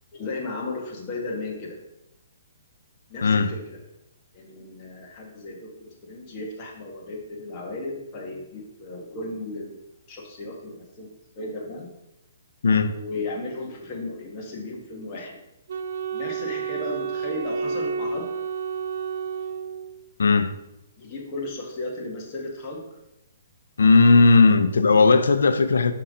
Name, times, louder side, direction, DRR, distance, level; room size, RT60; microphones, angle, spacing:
voice 1, 0.1-1.8 3.1-3.8 4.3-9.8 10.1-11.9 12.9-15.4 16.1-18.3 21.0-23.0, left 2 dB, 30° left, 1.6 m, -35 dB
Wind instrument woodwind instrument, 15.7-20.1, right 5 dB, 60° right, 0.5 m, -30 dB
voice 2, 20.2-20.5 23.8-25.9, left 3 dB, 85° left, 0.6 m, -17 dB
5.7 x 5.4 x 3.7 m
hypercardioid pair, 150°, 0 cm